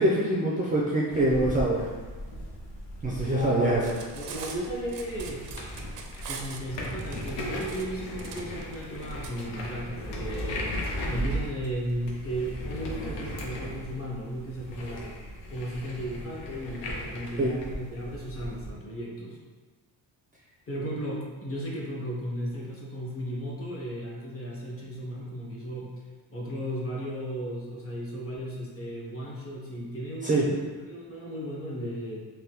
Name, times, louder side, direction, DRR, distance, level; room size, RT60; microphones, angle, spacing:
voice 1, 0.0-1.9 3.0-3.8 17.4-17.5 30.2-30.4, right 1 dB, 20° right, -5 dB, 0.4 m, -24 dB
sound 1, 1.1-18.7, equal, 85° left, 0.7 m, -37 dB
voice 2, 3.2-3.8 4.1-5.5 6.3-10.7 11.0-15.1 15.5-19.4 20.7-25.9 26.3-32.3, equal, 35° left, -4 dB, 0.8 m, -35 dB
Cutlery silverware, 3.7-9.3, right 6 dB, 75° right, 0.5 m, -42 dB
3.4 x 2.2 x 2.8 m, 1.4 s
cardioid pair, 115°, 41 cm